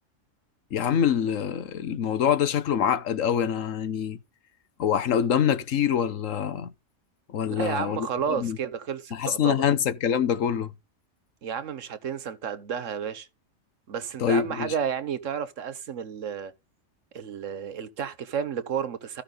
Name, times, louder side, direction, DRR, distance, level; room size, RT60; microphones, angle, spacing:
voice 1, 0.7-4.2 4.8-6.7 7.3-8.1 8.4-8.6 9.1-10.7 14.2-14.7, left 8 dB, 80° left, 1.3 m, -25 dB
voice 2, 7.5-9.7 11.4-13.3 13.9-16.5 17.1-19.2, right 7 dB, 75° right, 1.4 m, -31 dB
14.0 x 5.7 x 3.9 m
omnidirectional pair, 1.3 m